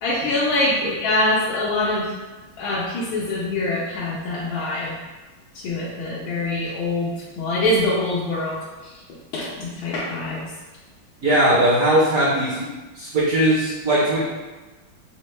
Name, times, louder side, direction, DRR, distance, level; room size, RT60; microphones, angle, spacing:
voice 1, 0.0-2.1 2.6-4.9 5.5-9.0 9.3-10.5, left 2 dB, 85° left, -7 dB, 1.4 m, -24 dB
voice 2, 11.2-12.7 12.9-14.2, right 1 dB, 60° right, -8 dB, 0.9 m, -19 dB
4.3 x 2.1 x 3.1 m, 1.2 s
omnidirectional pair, 2.1 m